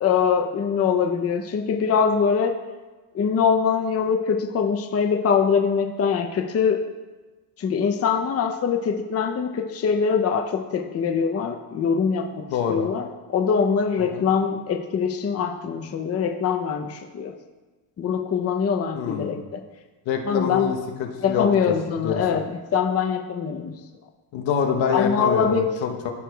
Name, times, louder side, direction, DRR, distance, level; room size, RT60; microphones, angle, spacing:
voice 1, 0.0-2.5 3.1-6.8 7.6-12.4 12.7-17.3 18.0-19.6 20.3-20.7 21.2-22.4 22.7-23.7 24.9-25.7, left 6 dB, 35° left, 3 dB, 0.6 m, -23 dB
voice 2, 12.5-12.9 14.1-14.3 18.9-19.4 20.1-21.7 22.0-22.2 24.3-26.1, left 7 dB, 85° left, 2 dB, 1.0 m, -26 dB
13.5 x 4.7 x 2.3 m, 1.2 s
cardioid pair, 100°, 44 cm